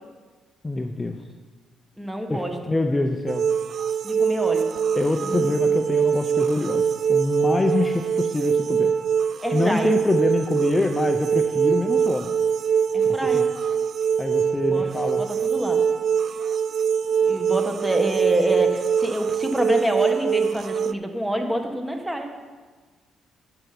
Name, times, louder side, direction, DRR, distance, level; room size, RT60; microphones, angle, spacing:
voice 1, 0.6-1.2 2.3-3.5 4.9-8.9 9.5-12.3 13.0-13.4 14.2-15.2, left 2 dB, 20° left, 5 dB, 0.7 m, -25 dB
voice 2, 2.0-2.6 4.0-4.7 5.2-5.5 9.4-9.9 12.9-13.5 14.6-14.9 15.2-15.8 17.2-22.3, right 1 dB, 5° right, 4 dB, 1.5 m, -27 dB
sound 1, 3.3-20.9, right 7 dB, 55° right, 0.3 m, -23 dB
11.0 x 6.9 x 6.0 m, 1.4 s
cardioid pair, 90°, 0 cm